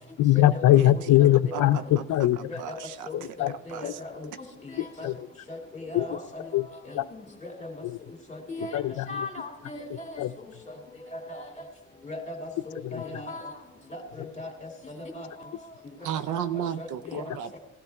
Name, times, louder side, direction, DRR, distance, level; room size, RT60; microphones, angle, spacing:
voice 1, 0.2-2.4 3.4-3.5 3.8-3.9 5.0-5.1 5.9-6.2 6.5-6.7 6.9-7.1 8.7-9.3 10.2-10.3 12.9-13.0 17.1-17.2, left 14 dB, 75° left, 13 dB, 0.6 m, -21 dB
voice 2, 1.5-2.0 2.4-3.1 3.7-3.8 16.0-17.6, right 9 dB, 85° right, 12 dB, 0.7 m, -34 dB
voice 3, 3.1-4.3 4.6-5.1 5.5-6.2 6.8-6.9 8.3-8.7 9.1-10.2 11.1-11.5 12.0-12.3 12.7-13.5 13.9-14.5 14.8-15.3 16.8-17.2, left 2 dB, 25° left, 2 dB, 2.6 m, -38 dB
18.0 x 12.0 x 3.5 m, 0.93 s
cardioid pair, 90°, 30 cm